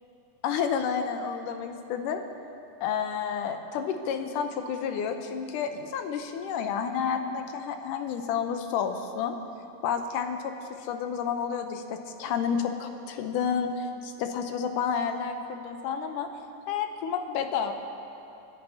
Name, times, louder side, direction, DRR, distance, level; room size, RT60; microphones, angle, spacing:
voice 1, 0.4-2.2 2.8-9.4 9.8-10.5 10.8-16.3 16.7-17.7, left 7 dB, 80° left, 6 dB, 2.3 m, -30 dB
29.5 x 11.0 x 2.8 m, 2.8 s
omnidirectional pair, 3.7 m